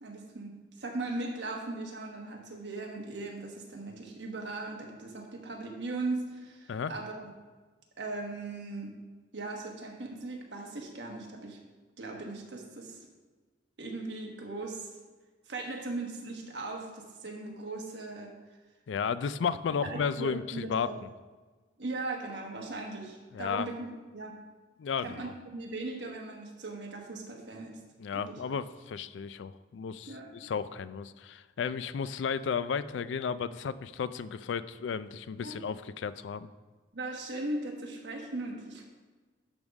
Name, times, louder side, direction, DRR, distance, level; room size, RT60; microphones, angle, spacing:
voice 1, 0.0-7.3 8.0-8.9 9.3-11.6 12.0-13.0 13.8-14.9 15.5-18.4 19.8-21.0 21.8-24.4 25.0-27.8 28.1-28.4 30.1-30.5 35.4-35.6 36.9-38.8, right 2 dB, 75° right, 1 dB, 1.3 m, -38 dB
voice 2, 18.9-20.9 23.3-23.7 24.8-25.3 28.0-36.5, left 6 dB, 85° left, 15 dB, 0.4 m, -33 dB
11.0 x 3.6 x 5.2 m, 1.4 s
head